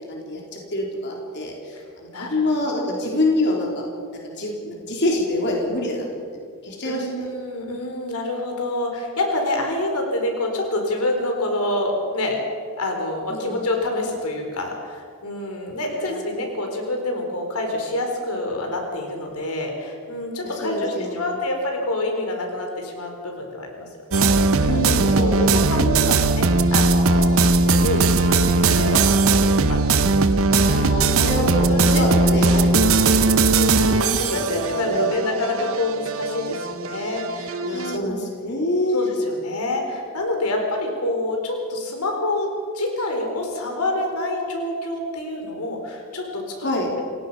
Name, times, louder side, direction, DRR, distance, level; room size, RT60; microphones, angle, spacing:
voice 1, 0.1-1.5 2.0-3.9 4.4-6.1 6.3-7.1 13.3-13.6 15.9-16.1 20.6-21.3 24.7-26.1 30.5-33.5 33.9-35.1 37.6-39.0 46.6-46.9, left 1 dB, 55° left, -1 dB, 3.6 m, -26 dB
voice 2, 2.1-2.5 6.8-12.4 12.8-31.3 31.7-32.0 33.5-38.3 38.9-42.5 42.7-47.0, left 2 dB, 90° left, 2 dB, 4.3 m, -27 dB
sound 1, 24.1-38.0, right 3 dB, 65° right, 1.0 m, -19 dB
28.5 x 17.5 x 5.6 m, 2.1 s
head